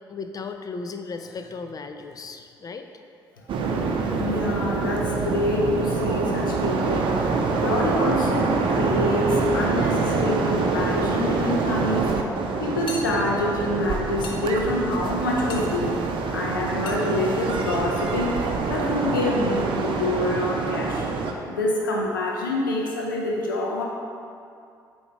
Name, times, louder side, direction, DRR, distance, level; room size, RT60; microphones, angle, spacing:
voice 1, 0.1-2.9, left 4 dB, 35° left, 7 dB, 0.5 m, -35 dB
sound 1, 3.5-21.3, right 4 dB, 55° right, 0.6 m, -25 dB
voice 2, 4.2-7.1 7.6-12.2 12.6-16.0 16.3-18.4 18.7-21.1 21.5-23.8, left 1 dB, 85° left, -2 dB, 0.7 m, -26 dB
sound 2, 12.9-13.1 14.2-14.5 15.5-15.7 16.8-17.0, left 3 dB, 55° left, 0.8 m, -36 dB
7.9 x 2.8 x 4.5 m, 2.4 s
figure-of-eight pair, 45°, 11 cm